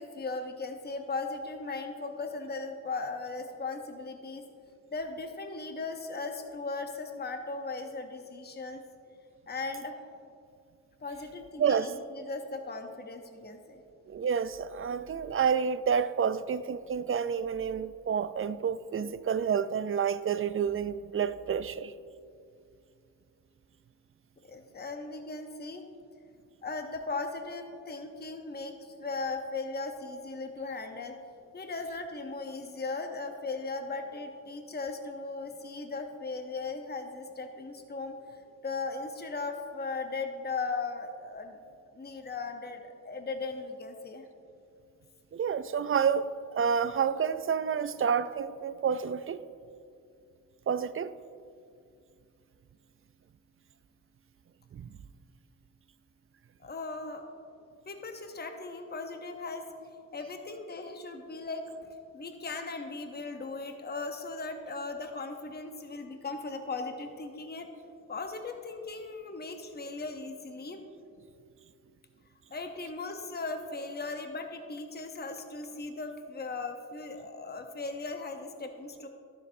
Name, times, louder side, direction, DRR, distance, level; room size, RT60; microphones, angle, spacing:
voice 1, 0.0-4.5 4.9-8.8 9.5-9.9 11.0-13.8 24.4-25.8 26.6-31.2 31.5-41.6 41.9-44.3 56.6-57.2 57.9-59.7 60.1-61.7 62.1-67.7 68.1-70.8 72.5-79.1, left 3 dB, 30° left, 0.8 m, -38 dB
voice 2, 11.6-11.9 14.1-21.9 45.3-49.4 50.7-51.1 54.7-54.9, right 7 dB, 40° right, 0.4 m, -29 dB
12.5 x 6.6 x 2.7 m
cardioid pair, 45°, 33 cm